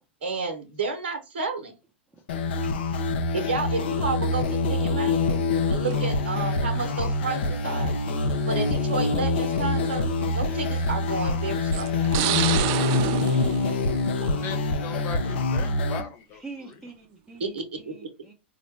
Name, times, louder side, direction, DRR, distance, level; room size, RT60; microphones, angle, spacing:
voice 1, 0.2-1.7 3.3-5.4 5.7-7.9 8.5-10.1 10.3-11.9 17.4-17.9, right 4 dB, 65° right, 0.8 m, -31 dB
sound 1, 2.3-16.0, left 3 dB, 65° left, 0.6 m, -25 dB
sound 2, 5.9-6.3 7.3-7.4 8.5-8.6 9.1-9.2 10.6-11.0 11.7-14.6 15.0-15.4, right 13 dB, 45° right, 0.3 m, -29 dB
voice 2, 14.4-16.4, left 8 dB, 40° left, 1.1 m, -38 dB
voice 3, 16.3-18.3, right 3 dB, 5° right, 0.8 m, -44 dB
4.1 x 2.1 x 3.2 m
hypercardioid pair, 100°, 6 cm